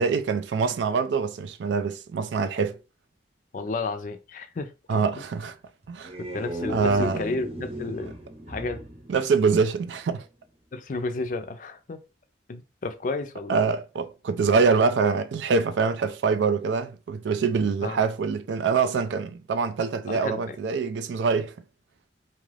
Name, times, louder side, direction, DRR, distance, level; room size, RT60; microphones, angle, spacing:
voice 1, 0.0-2.8 4.9-5.6 5.9-6.1 6.7-7.2 9.1-10.2 13.5-21.5, right 5 dB, 80° right, 0.4 m, -24 dB
voice 2, 3.5-5.2 6.2-8.2 8.5-8.8 10.7-12.0 12.5-13.6 17.8-18.0 20.1-20.6, left 3 dB, 45° left, 0.4 m, -32 dB
sound 1, 5.8-10.1, right 1 dB, 35° right, 0.8 m, -37 dB
2.6 x 2.5 x 3.2 m
head